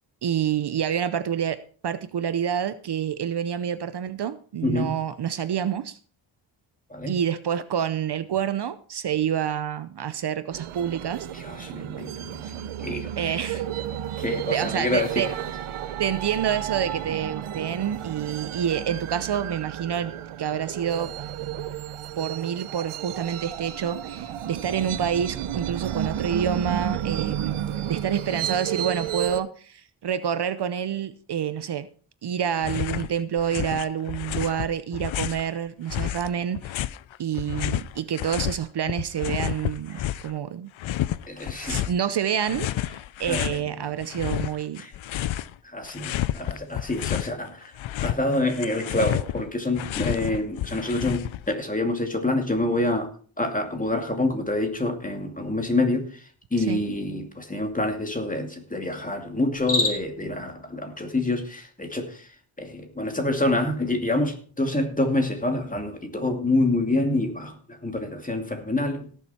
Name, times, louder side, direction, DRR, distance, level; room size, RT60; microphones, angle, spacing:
voice 1, 0.2-6.0 7.1-11.3 11.7-12.1 13.2-13.6 14.5-15.3 16.0-21.1 21.5-21.6 22.2-27.6 27.8-31.9 32.2-36.8 37.2-40.7 41.6-44.8 56.6-56.8, right 8 dB, 55° right, 0.7 m, -28 dB
voice 2, 4.6-4.9 6.9-7.2 11.4-12.4 12.8-13.1 14.2-15.1 41.3-41.9 43.3-43.4 44.8-44.9 45.7-47.7 48.0-53.1 53.4-56.0 56.5-62.1 62.6-69.1, left 2 dB, 15° left, 2.5 m, -27 dB
sound 1, 10.5-29.4, right 10 dB, 90° right, 0.9 m, -32 dB
sound 2, 32.6-33.1 33.4-35.5 35.9-38.6 38.9-40.3 40.8-42.0 42.4-43.6 44.0-45.5 45.8-47.3 47.6-51.5, left 13 dB, 70° left, 0.6 m, -30 dB
Cricket, 59.5-60.3, left 2 dB, 40° left, 3.2 m, -26 dB
17.5 x 7.3 x 4.3 m
wide cardioid pair, 105°, 48 cm